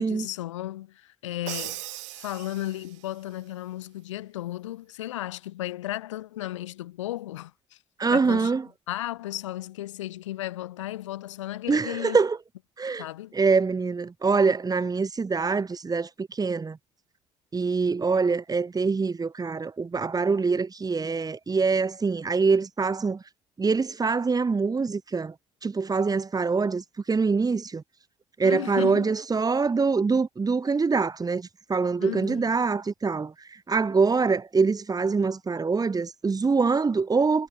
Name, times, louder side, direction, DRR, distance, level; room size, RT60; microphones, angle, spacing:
voice 1, 0.0-1.8 2.1-7.8 8.1-8.5 8.9-12.2 13.0-13.3 28.4-29.1 32.0-32.5, left 14 dB, 80° left, 3.7 m, -34 dB
Crash cymbal, 1.5-3.1, right 23 dB, 75° right, 1.1 m, -38 dB
voice 2, 8.0-8.7 11.7-12.4 12.8-13.0 13.3-16.8 17.5-23.2 23.6-25.3 25.6-27.8 28.4-33.3 33.7-37.5, right 4 dB, 25° right, 1.2 m, -24 dB
hypercardioid pair, 55°, 16 cm